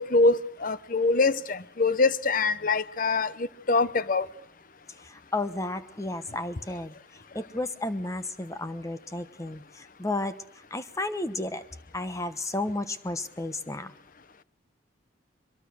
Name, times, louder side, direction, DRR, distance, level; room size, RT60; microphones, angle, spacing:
voice 1, 0.0-4.3, left 3 dB, 45° left, 0.8 m, -24 dB
voice 2, 5.0-11.6 11.9-13.9, left 2 dB, 15° left, 1.1 m, -33 dB
23.0 x 22.5 x 6.4 m
head